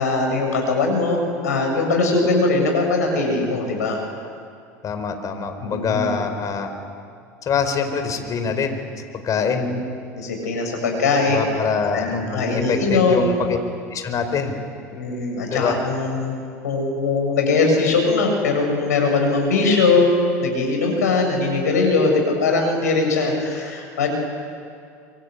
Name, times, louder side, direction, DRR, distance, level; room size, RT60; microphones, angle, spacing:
voice 1, 0.0-4.0 5.6-6.2 9.4-9.8 10.1-11.4 11.9-13.3 14.9-16.4 16.6-20.1 20.4-24.1, left 3 dB, 85° left, 2 dB, 7.0 m, -21 dB
voice 2, 4.8-6.7 7.5-8.8 9.1-9.7 11.2-13.6 13.9-14.5 15.5-15.8, left 6 dB, 40° left, 7 dB, 4.5 m, -24 dB
26.0 x 23.5 x 9.8 m, 2.4 s
hypercardioid pair, 75°, 9 cm